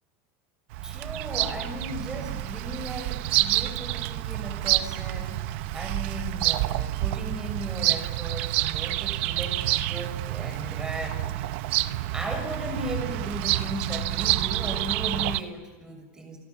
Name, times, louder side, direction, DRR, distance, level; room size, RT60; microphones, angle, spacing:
Bird vocalization bird call bird song, 0.7-15.4, right 16 dB, 60° right, 1.1 m, -28 dB
voice 1, 0.8-11.5 12.1-16.4, equal, 10° right, 4 dB, 6.5 m, -36 dB
28.5 x 28.0 x 7.3 m, 1.2 s
supercardioid pair, 160°, 7 cm